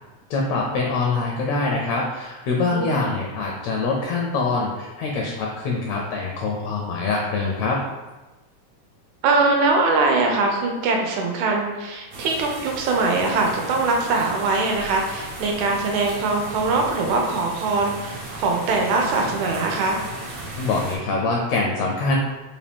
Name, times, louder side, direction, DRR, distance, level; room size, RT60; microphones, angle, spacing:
voice 1, 0.3-7.8 20.5-22.2, left 3 dB, 80° left, -1 dB, 1.7 m, -24 dB
voice 2, 2.6-3.0 9.2-20.0, right 3 dB, 75° right, 1 dB, 2.0 m, -22 dB
sound 1, 12.1-21.0, right 2 dB, 60° right, 1.7 m, -36 dB
5.1 x 2.6 x 3.5 m, 1.1 s
omnidirectional pair, 3.5 m